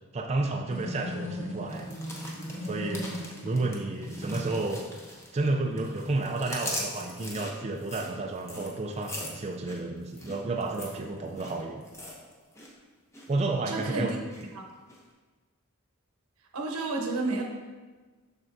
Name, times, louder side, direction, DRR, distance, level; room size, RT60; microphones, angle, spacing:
voice 1, 0.1-1.9 2.6-3.1 3.4-4.8 5.3-11.8 13.3-14.1, right 2 dB, 30° right, 2 dB, 0.4 m, -31 dB
sound 1, 0.7-4.7, equal, 70° left, 1.3 m, -37 dB
sound 2, 1.7-5.5 5.8-12.7 13.0-13.3 13.7-14.4 14.9-15.0, left 1 dB, 15° left, 0.8 m, -41 dB
voice 2, 13.7-14.2 14.5-14.6 16.5-17.4, right 3 dB, 85° right, 1 dB, 1.0 m, -30 dB
7.5 x 5.9 x 2.6 m, 1.3 s
head